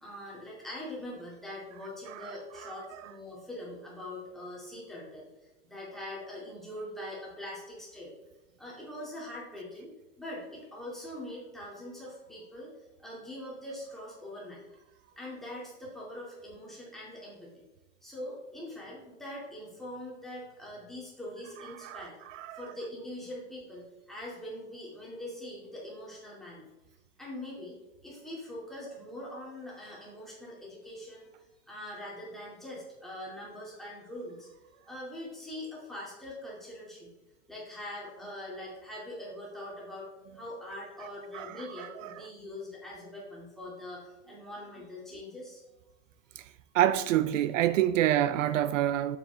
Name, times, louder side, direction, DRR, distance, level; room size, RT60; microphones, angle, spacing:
voice 1, 0.0-8.1 8.6-14.6 15.2-17.6 18.0-22.2 22.5-26.7 27.2-27.8 28.0-31.3 31.7-34.5 34.8-37.1 37.5-45.6, left 1 dB, ahead, 2.3 m, -43 dB
voice 2, 21.8-22.6 41.3-42.1 46.4-46.5 46.7-49.2, right 12 dB, 70° right, 0.5 m, -28 dB
7.2 x 7.0 x 3.4 m
supercardioid pair, 150°, 39 cm